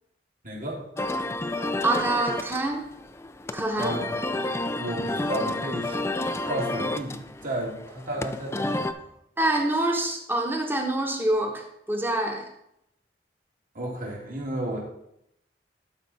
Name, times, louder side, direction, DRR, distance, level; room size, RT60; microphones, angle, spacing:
voice 1, 0.4-0.9 3.8-9.1 13.7-14.8, right 1 dB, 50° right, -3 dB, 2.4 m, -33 dB
sound 1, 1.0-8.9, left 2 dB, 15° left, 0.4 m, -30 dB
voice 2, 1.8-2.9 3.5-4.0 9.4-12.5, right 1 dB, 10° right, 2 dB, 1.1 m, -26 dB
11.5 x 4.8 x 4.2 m, 0.78 s
head